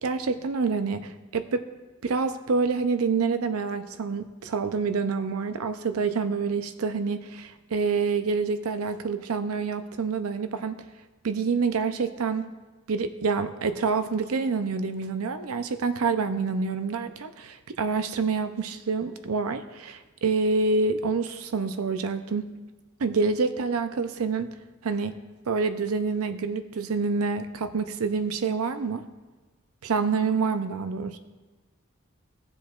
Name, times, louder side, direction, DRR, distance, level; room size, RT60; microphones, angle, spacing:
voice 1, 0.0-1.6 2.0-10.8 11.2-12.5 12.9-22.5 23.0-24.5 24.8-25.2 25.5-29.1 29.8-31.2, right 4 dB, 85° right, 9 dB, 0.5 m, -27 dB
17.5 x 7.5 x 2.4 m, 1.3 s
head